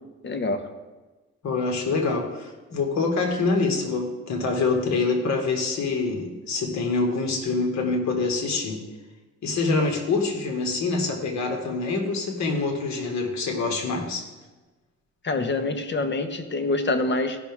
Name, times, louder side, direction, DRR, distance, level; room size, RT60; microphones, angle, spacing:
voice 1, 0.2-0.7 15.2-17.4, left 2 dB, 40° left, 7 dB, 1.2 m, -26 dB
voice 2, 1.4-8.8 9.4-14.3, left 3 dB, 65° left, 3 dB, 2.0 m, -25 dB
16.0 x 6.0 x 3.7 m, 1.2 s
cardioid pair, 90°, 30 cm